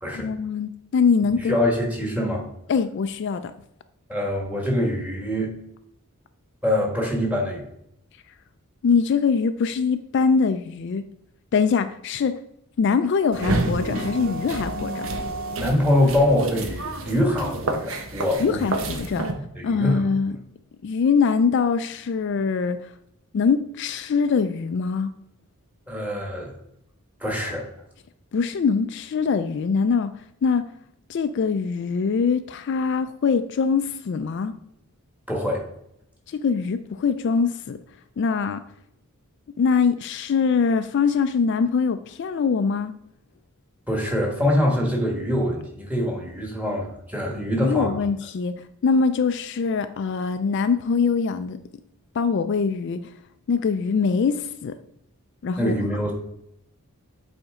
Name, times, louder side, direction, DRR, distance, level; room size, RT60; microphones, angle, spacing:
voice 1, 0.1-1.6 2.7-3.5 8.8-11.0 11.5-12.4 12.8-15.1 18.4-19.3 19.6-20.4 20.8-22.9 23.3-25.1 28.3-30.1 30.4-30.7 31.1-34.5 36.3-37.8 38.2-38.6 39.6-42.9 47.6-48.5 48.8-51.6 52.1-53.1 53.5-54.8 55.4-55.7, left 5 dB, 55° left, 10 dB, 0.3 m, -23 dB
voice 2, 1.4-2.4 4.1-5.5 6.6-7.6 15.6-18.7 19.5-20.0 25.9-26.5 27.2-27.7 35.3-35.7 43.9-47.9 55.6-56.1, left 1 dB, 5° right, -1 dB, 1.4 m, -24 dB
sound 1, 13.3-19.3, right 2 dB, 65° right, 0.8 m, -29 dB
7.8 x 4.3 x 3.6 m, 0.76 s
head